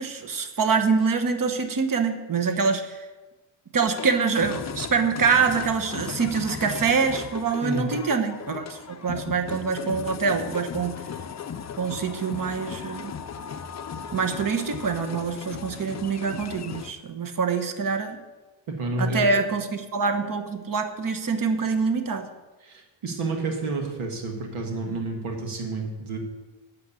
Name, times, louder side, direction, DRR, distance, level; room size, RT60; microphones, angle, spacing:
voice 1, 0.0-3.0 3.7-11.0 11.8-13.2 14.1-18.2 19.0-22.3, right 5 dB, 40° right, 7 dB, 1.2 m, -25 dB
sound 1, 3.8-16.9, left 7 dB, 35° left, 0.6 m, -37 dB
voice 2, 18.7-19.3 22.6-26.2, right 3 dB, 85° right, 1 dB, 1.8 m, -30 dB
8.4 x 6.5 x 8.4 m, 1.2 s
cardioid pair, 105°, 49 cm